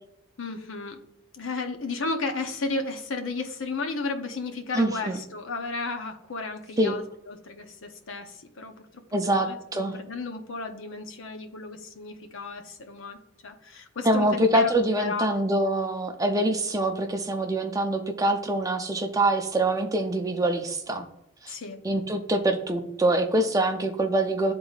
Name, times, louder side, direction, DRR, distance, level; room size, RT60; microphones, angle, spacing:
voice 1, 0.4-1.0 1.3-15.3 21.5-21.8, left 3 dB, 70° left, 5 dB, 0.8 m, -34 dB
voice 2, 4.7-5.2 6.8-6.9 9.1-10.0 14.0-21.1 21.4-21.5 21.8-24.5, right 1 dB, 15° right, 5 dB, 0.5 m, -24 dB
10.5 x 3.9 x 2.4 m, 0.82 s
head